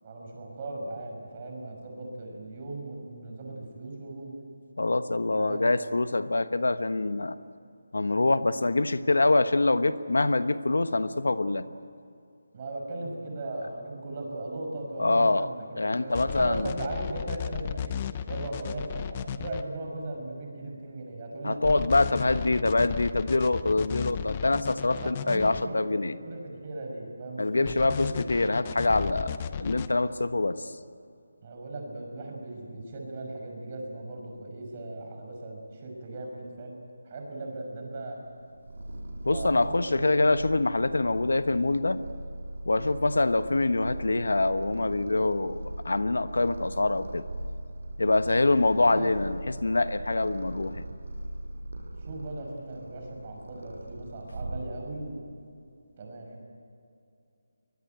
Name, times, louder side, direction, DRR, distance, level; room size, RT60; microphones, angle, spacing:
voice 1, 0.0-4.3 5.4-5.8 12.5-18.0 18.3-21.7 25.0-26.0 26.2-28.2 31.4-36.8 37.1-38.2 39.2-40.2 48.8-49.1 51.9-55.3 56.0-56.5, right 2 dB, 30° right, 1 dB, 5.8 m, -38 dB
voice 2, 4.8-7.4 7.9-11.6 15.0-15.5 15.8-16.7 21.4-26.1 27.4-29.3 29.6-30.5 39.2-42.0 42.7-45.6 45.8-47.2 48.0-50.8, left 2 dB, 90° left, 12 dB, 1.2 m, -25 dB
sound 1, 16.1-19.6 21.6-25.6 27.7-29.9, left 8 dB, 20° left, 0.7 m, -34 dB
Purr, 38.3-55.1, right 1 dB, 65° right, 6.4 m, -40 dB
24.0 x 20.5 x 9.1 m, 2.5 s
figure-of-eight pair, 170°, 0 cm